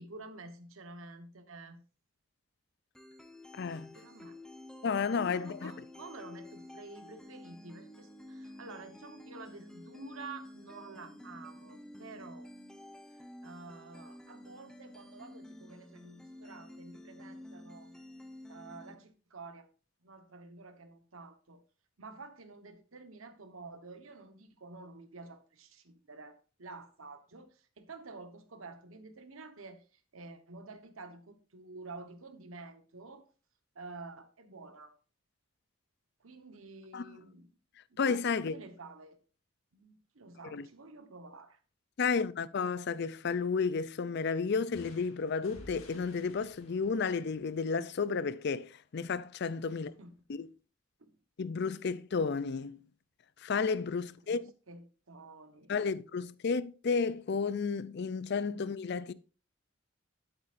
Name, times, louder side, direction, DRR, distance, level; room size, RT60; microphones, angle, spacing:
voice 1, 0.0-1.8 3.9-4.4 5.3-12.5 13.1-17.9 18.5-19.7 20.0-21.6 22.0-33.2 33.7-34.9 36.2-37.5 37.9-38.0 38.3-39.2 39.7-41.6 49.8-50.1 51.0-51.1 54.0-55.7, right 3 dB, 80° right, 1.2 m, -50 dB
sound 1, 3.0-19.0, left 1 dB, 5° left, 0.8 m, -50 dB
voice 2, 3.5-3.9 4.8-5.7 36.9-37.0 38.0-38.6 40.5-40.7 42.0-49.9 50.3-50.5 51.4-52.8 53.4-54.4 55.7-59.1, left 5 dB, 55° left, 0.4 m, -32 dB
sound 2, 44.7-48.4, left 1 dB, 80° left, 2.2 m, -55 dB
11.0 x 8.0 x 2.6 m
head